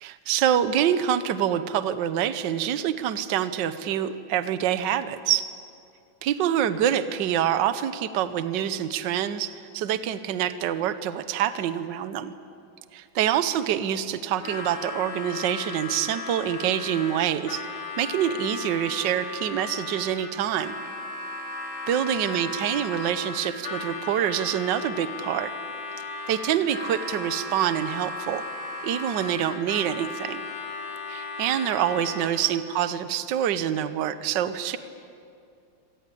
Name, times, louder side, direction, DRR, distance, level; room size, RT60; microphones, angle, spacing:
voice 1, 0.0-5.5 6.2-12.3 12.9-17.6 18.0-20.8 21.9-25.5 26.3-28.4 28.8-30.4 31.1-34.8, right 10 dB, 65° right, 12 dB, 1.4 m, -26 dB
Harmonica, 14.4-32.6, left 3 dB, 50° left, 3.0 m, -36 dB
25.5 x 18.0 x 8.4 m, 2.4 s
omnidirectional pair, 2.3 m